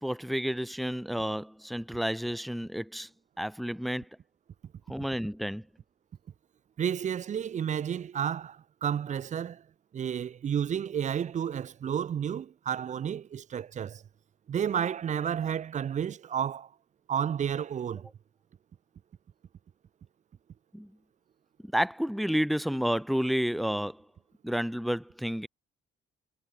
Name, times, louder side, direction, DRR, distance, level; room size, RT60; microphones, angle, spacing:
voice 1, 0.0-3.1 3.4-4.1 4.9-5.7 20.7-20.9 21.6-24.1 24.4-25.5, equal, ahead, 1.1 m, -30 dB
voice 2, 6.8-9.6 9.9-14.0 14.5-16.7 17.1-18.1, right 8 dB, 40° right, 0.4 m, -31 dB
cardioid pair, 90°, 20 cm